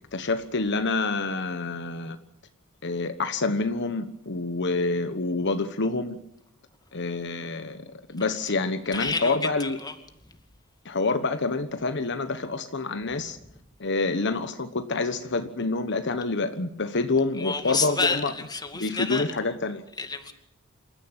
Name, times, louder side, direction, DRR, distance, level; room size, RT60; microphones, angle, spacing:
voice 1, 0.1-2.2 2.8-6.2 6.9-9.8 10.8-13.4 13.8-18.3 18.7-19.8, left 3 dB, 60° left, 9 dB, 1.3 m, -27 dB
voice 2, 8.9-9.9 17.4-19.2 20.0-20.3, left 4 dB, 20° left, 7 dB, 2.4 m, -29 dB
27.0 x 14.0 x 8.9 m, 0.78 s
head